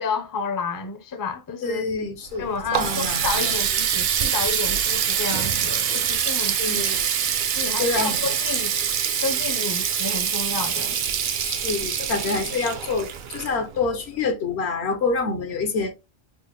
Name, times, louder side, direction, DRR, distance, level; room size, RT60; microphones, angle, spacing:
voice 1, 0.0-1.9 2.4-7.0 7.6-8.7 9.2-11.0, left 5 dB, 25° left, 0.5 m, -30 dB
voice 2, 1.6-2.5 2.8-3.6 6.6-7.1 7.8-8.2 11.4-16.0, left 4 dB, 75° left, 1.1 m, -27 dB
Water tap faucet, 2.3-14.0, right 8 dB, 60° right, 0.6 m, -25 dB
4.4 x 2.1 x 3.1 m
omnidirectional pair, 1.1 m